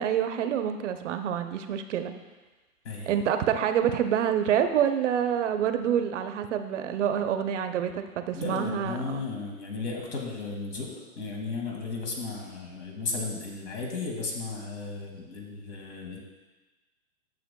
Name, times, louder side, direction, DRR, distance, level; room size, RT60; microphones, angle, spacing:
voice 1, 0.0-2.1 3.1-9.2, right 9 dB, 60° right, 8 dB, 0.7 m, -27 dB
voice 2, 8.3-16.2, left 4 dB, 55° left, 0 dB, 2.0 m, -35 dB
12.0 x 7.1 x 2.2 m, 1.2 s
hypercardioid pair, 150°, 42 cm